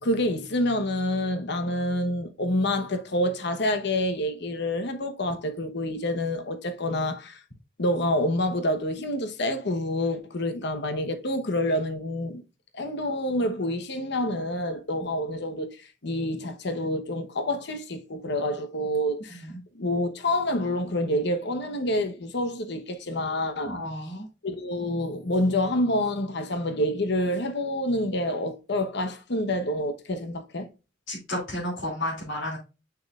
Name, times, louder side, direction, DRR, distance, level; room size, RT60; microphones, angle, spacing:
voice 1, 0.0-7.4 7.8-12.4 12.7-19.4 19.7-23.8 24.4-30.7, left 1 dB, 65° left, 1.0 m, -27 dB
voice 2, 19.3-19.6 23.6-24.3 31.1-32.6, left 1 dB, 80° left, 2.6 m, -32 dB
6.8 x 6.2 x 2.4 m
head